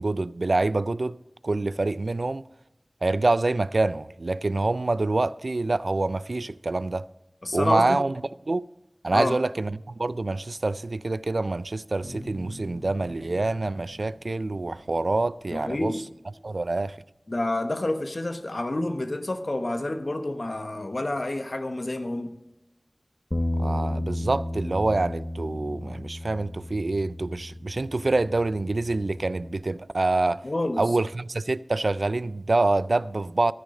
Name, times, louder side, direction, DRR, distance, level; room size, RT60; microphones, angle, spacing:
voice 1, 0.0-2.5 3.0-7.1 7.5-8.2 8.5-8.7 9.0-16.0 16.4-17.0 23.6-30.5 30.8-33.5, right 2 dB, 85° right, 0.3 m, -26 dB
voice 2, 7.4-8.0 9.1-9.4 15.5-16.0 17.3-22.3 30.4-30.8, left 1 dB, 65° left, 1.0 m, -29 dB
sound 1, 12.0-16.1, left 1 dB, 90° left, 3.3 m, -45 dB
Bass guitar, 23.3-29.6, left 1 dB, 30° left, 0.8 m, -33 dB
14.0 x 9.7 x 3.7 m
wide cardioid pair, 50°, 0 cm